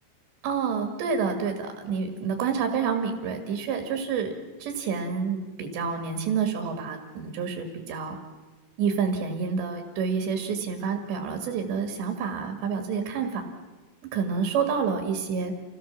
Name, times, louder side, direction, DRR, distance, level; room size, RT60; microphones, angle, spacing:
voice 1, 0.4-4.3 4.6-8.2 8.8-13.4 14.0-15.5, right 6 dB, 85° right, 5 dB, 4.3 m, -28 dB
28.5 x 17.0 x 7.4 m, 1.2 s
omnidirectional pair, 4.9 m